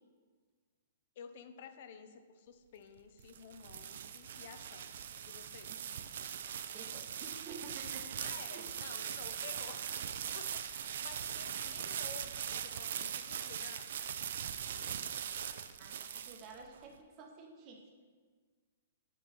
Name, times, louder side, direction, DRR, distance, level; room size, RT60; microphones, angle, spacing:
voice 1, 1.2-4.9 5.3-5.8 8.2-9.9 10.3-13.9, left 6 dB, 45° left, 10 dB, 0.4 m, -52 dB
sound 1, 3.0-16.8, right 8 dB, 55° right, 0.3 m, -41 dB
voice 2, 6.7-8.8 15.8-17.8, right 4 dB, 25° right, 2 dB, 0.7 m, -51 dB
9.1 x 3.1 x 4.1 m, 1.5 s
hypercardioid pair, 170°, 0 cm